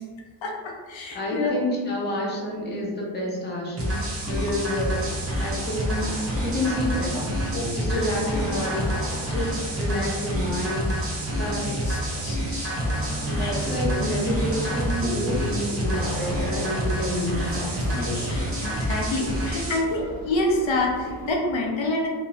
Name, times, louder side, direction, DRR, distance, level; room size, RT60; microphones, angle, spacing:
voice 1, 0.4-1.6 13.2-14.1 18.3-22.1, left 2 dB, 65° left, 0 dB, 0.6 m, -27 dB
voice 2, 1.1-5.0 5.4-6.1 6.4-7.2 7.7-9.0 9.2-10.9 11.3-11.6 13.6-17.8, left 1 dB, 20° left, -3 dB, 0.6 m, -29 dB
sound 1, 3.8-19.8, equal, 30° right, 0.6 m, -28 dB
sound 2, 4.9-21.3, equal, 45° left, 0.9 m, -34 dB
2.8 x 2.0 x 2.6 m, 1.5 s
cardioid pair, 130°, 50 cm